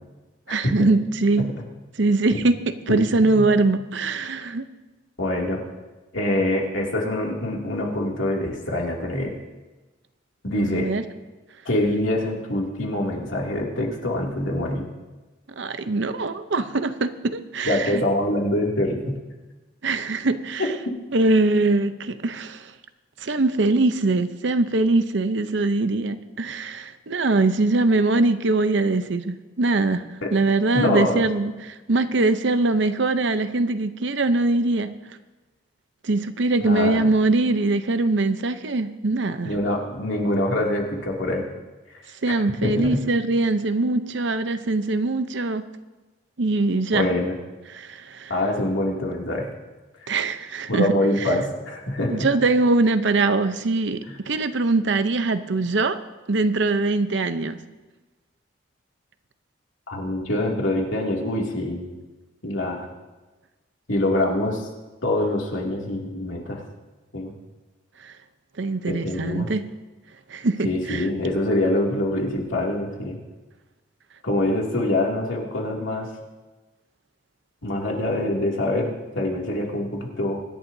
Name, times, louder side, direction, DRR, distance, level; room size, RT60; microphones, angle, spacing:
voice 1, 0.5-1.5 2.0-2.6 2.9-4.7 10.5-11.0 15.6-18.0 19.8-20.6 21.1-22.7 23.2-34.9 36.0-39.5 42.2-45.7 46.4-47.1 47.7-48.3 50.1-50.9 51.2-51.3 52.1-56.0 56.3-57.6 68.0-68.1 68.6-69.6 70.3-71.1, right 2 dB, 70° right, 10 dB, 0.7 m, -22 dB
voice 2, 2.9-3.4 5.2-5.6 6.1-9.3 10.4-10.9 11.6-14.8 17.6-19.2 20.6-20.7 30.2-30.3 30.7-31.3 36.6-37.1 39.4-41.5 42.6-43.0 46.9-47.3 48.3-49.5 50.0-50.1 50.7-52.3 54.1-54.2 59.9-61.9 62.4-62.9 63.9-64.7 65.0-66.6 67.1-67.4 68.9-69.5 70.6-73.2 74.2-76.1 77.6-80.4, left 1 dB, 85° left, -1 dB, 2.6 m, -25 dB
24.5 x 11.0 x 2.7 m, 1.2 s
head